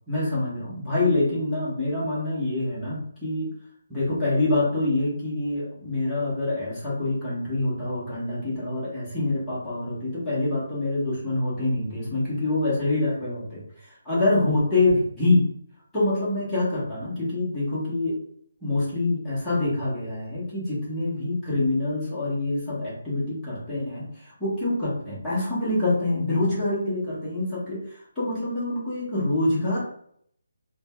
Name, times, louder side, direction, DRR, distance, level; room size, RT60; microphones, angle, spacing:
voice 1, 0.1-3.5 3.9-15.4 15.9-18.2 18.6-29.8, left 2 dB, 5° left, -12 dB, 1.0 m, -26 dB
3.7 x 2.2 x 2.2 m, 0.67 s
hypercardioid pair, 175°, 0 cm